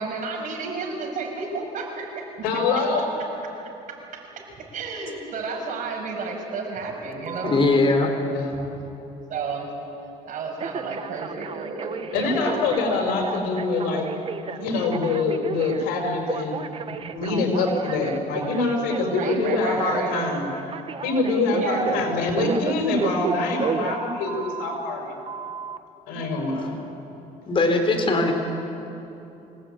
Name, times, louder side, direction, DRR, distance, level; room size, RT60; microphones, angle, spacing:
voice 1, 0.0-3.1 3.9-7.6 9.3-9.7 10.2-12.7 19.1-20.2 21.5-22.0, right 4 dB, 60° right, 1 dB, 6.6 m, -32 dB
voice 2, 2.4-3.1 8.3-8.6 12.1-14.1 14.4-16.6 17.1-20.4 21.0-25.1 26.1-26.8, left 3 dB, 90° left, 2 dB, 5.6 m, -25 dB
Telephone, 7.3-7.8 10.6-24.8 25.3-25.8, right 6 dB, 35° right, 1.2 m, -33 dB
voice 3, 7.4-8.1 27.5-28.3, left 3 dB, 35° left, 4 dB, 4.4 m, -20 dB
26.5 x 18.5 x 9.1 m, 2.9 s
cardioid pair, 100°, 15 cm